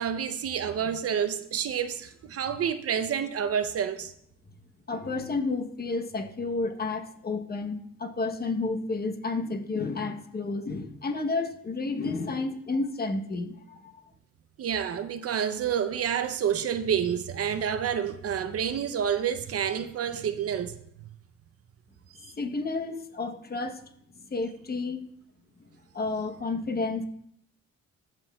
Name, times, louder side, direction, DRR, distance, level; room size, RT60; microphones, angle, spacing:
voice 1, 0.0-4.1 14.6-20.7 22.2-22.3, right 8 dB, 50° right, 0.6 m, -29 dB
voice 2, 4.9-14.1 22.4-23.8 24.3-25.1 25.9-27.0, left 3 dB, 30° left, 0.9 m, -31 dB
15.0 x 6.1 x 2.3 m
cardioid pair, 90°, 30 cm